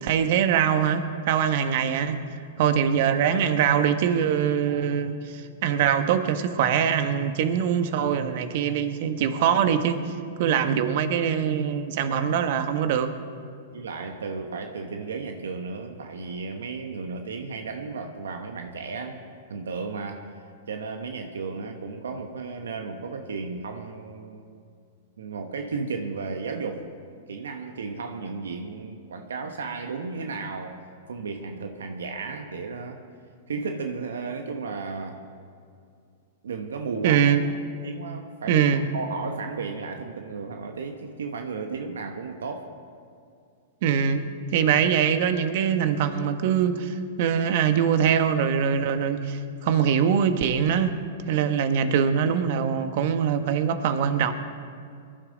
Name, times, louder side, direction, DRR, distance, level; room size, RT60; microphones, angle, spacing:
voice 1, 0.0-2.2 2.6-10.0 10.4-13.1 37.0-37.4 38.5-38.8 43.8-44.2 44.5-50.9 51.3-54.3, right 8 dB, 55° right, 9 dB, 1.1 m, -23 dB
voice 2, 13.7-20.3 20.7-24.4 25.2-26.8 27.3-30.8 31.1-33.0 33.5-35.2 36.4-37.3 37.8-38.7 38.9-42.7, right 4 dB, 85° right, 5 dB, 1.1 m, -34 dB
21.5 x 11.5 x 3.9 m, 2.3 s
hypercardioid pair, 120°, 0 cm